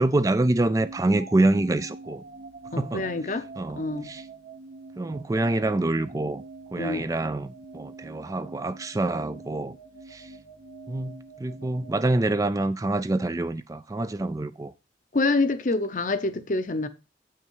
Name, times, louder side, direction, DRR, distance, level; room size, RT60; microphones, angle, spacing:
voice 1, 0.0-2.2 2.8-3.1 3.6-4.3 5.0-6.4 6.7-9.8 10.1-10.3 10.9-11.1 11.4-14.7, right 2 dB, 20° right, 0.3 m, -26 dB
sound 1, 0.8-12.9, right 3 dB, 65° right, 1.0 m, -45 dB
voice 2, 2.7-3.5 3.8-4.1 6.8-7.1 15.1-16.9, left 3 dB, 45° left, 0.7 m, -26 dB
8.2 x 5.7 x 4.6 m
head